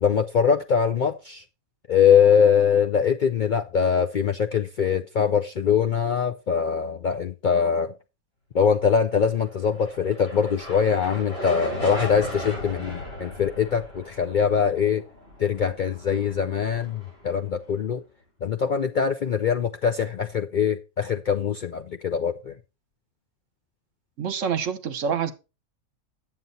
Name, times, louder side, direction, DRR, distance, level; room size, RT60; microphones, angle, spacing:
voice 1, 0.0-1.4 1.9-8.0 8.5-15.1 15.4-18.0 18.4-22.5, left 7 dB, 75° left, 0.4 m, -22 dB
sound 1, 9.5-17.9, equal, 45° left, 5.4 m, -37 dB
voice 2, 24.2-25.3, right 7 dB, 65° right, 1.3 m, -26 dB
9.2 x 7.6 x 4.0 m
omnidirectional pair, 1.5 m